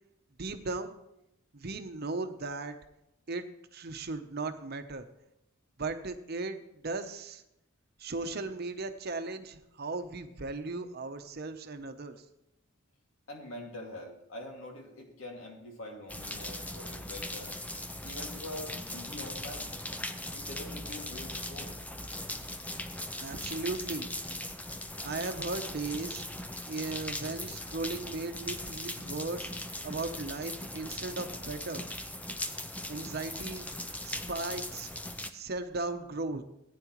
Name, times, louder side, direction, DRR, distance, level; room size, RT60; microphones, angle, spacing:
voice 1, 0.4-0.9 1.5-2.8 3.3-3.4 3.7-5.1 5.8-7.4 8.0-12.2 23.2-24.1 25.0-26.2 26.7-29.5 29.8-31.8 32.9-33.7 34.0-34.9 35.3-36.4, right 3 dB, 50° right, 8 dB, 0.8 m, -37 dB
voice 2, 13.3-17.6 18.0-19.7 20.3-21.7, left 1 dB, 80° left, 1 dB, 2.4 m, -44 dB
sound 1, 16.1-35.3, left 1 dB, 5° left, 0.5 m, -39 dB
15.5 x 9.3 x 3.1 m, 0.85 s
head